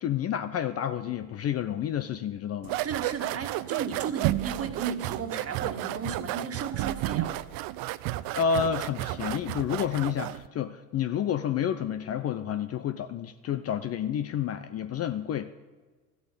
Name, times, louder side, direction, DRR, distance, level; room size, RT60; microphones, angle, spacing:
voice 1, 0.0-2.8 8.3-15.5, left 8 dB, 35° left, 11 dB, 0.6 m, -30 dB
sound 1, 2.6-10.5, right 16 dB, 50° right, 0.6 m, -32 dB
voice 2, 2.8-7.4, right 6 dB, 30° right, 5 dB, 1.8 m, -34 dB
13.0 x 8.0 x 8.2 m, 1.3 s
hypercardioid pair, 75°, 46 cm